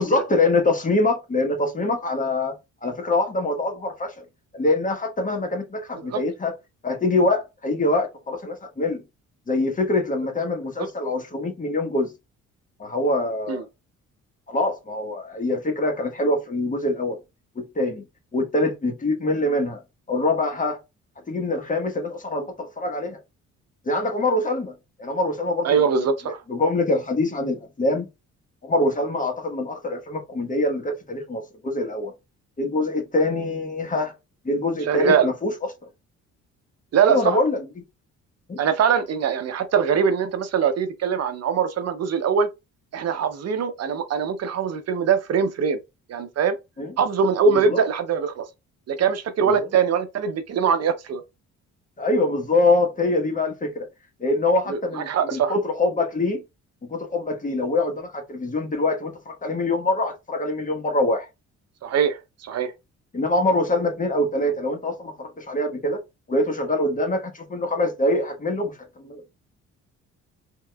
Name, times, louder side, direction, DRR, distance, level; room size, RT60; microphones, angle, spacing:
voice 1, 0.0-2.5 2.8-4.2 4.5-6.5 6.8-9.0 9.5-12.1 12.8-13.7 14.5-17.2 17.5-18.0 18.3-19.8 20.1-20.8 21.3-23.2 23.8-25.8 26.5-28.1 28.6-32.1 32.6-34.1 34.4-35.5 37.0-37.8 38.5-38.6 46.8-46.9 47.5-47.8 49.4-49.7 52.0-53.9 54.2-56.4 56.9-61.3 63.1-66.0 66.3-69.2, left 2 dB, 25° left, 1.2 m, -24 dB
voice 2, 25.6-26.4 34.9-35.3 36.9-37.4 38.6-42.5 42.9-45.8 46.1-46.5 47.0-48.4 48.9-51.2 54.7-55.5 61.8-62.2 62.4-62.7, right 6 dB, 55° right, 0.6 m, -22 dB
3.6 x 2.9 x 2.2 m
cardioid pair, 90°, 30 cm